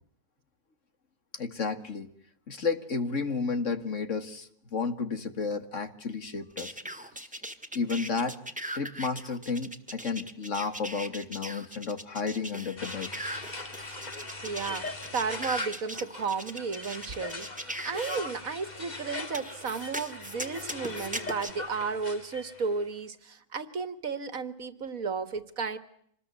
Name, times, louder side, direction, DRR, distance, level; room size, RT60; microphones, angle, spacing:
voice 1, 1.3-2.1 2.5-6.8 7.2-7.3 7.7-8.4 8.7-13.1, left 4 dB, 55° left, 10 dB, 2.1 m, -32 dB
sound 1, 6.6-18.2 19.3-21.5, right 1 dB, 5° right, 1.8 m, -39 dB
sound 2, 12.8-22.8, left 2 dB, 30° left, 2.2 m, -41 dB
voice 2, 14.4-14.9 15.1-25.8, right 5 dB, 65° right, 13 dB, 2.0 m, -33 dB
26.5 x 20.5 x 9.4 m, 0.69 s
omnidirectional pair, 1.6 m